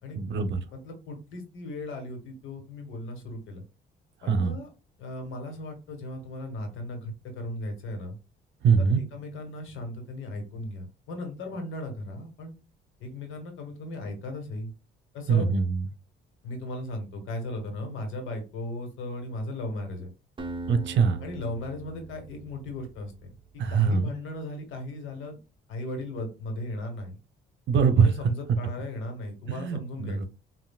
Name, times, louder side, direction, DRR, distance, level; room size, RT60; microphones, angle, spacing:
voice 1, 0.1-0.6 4.3-4.6 8.6-9.0 15.3-15.9 20.7-21.2 23.6-24.1 27.7-28.1 29.5-30.3, right 5 dB, 65° right, 10 dB, 0.7 m, -23 dB
voice 2, 0.7-3.6 4.2-4.7 5.0-8.2 8.8-12.5 13.0-14.7 15.1-15.5 16.4-20.1 21.2-23.1 23.7-25.4 25.7-27.1 28.0-30.2, left 1 dB, 80° left, 4 dB, 1.5 m, -37 dB
Acoustic guitar, 20.4-23.4, right 2 dB, 25° right, 0.8 m, -41 dB
5.5 x 2.7 x 2.3 m, 0.29 s
cardioid pair, 90°, 20 cm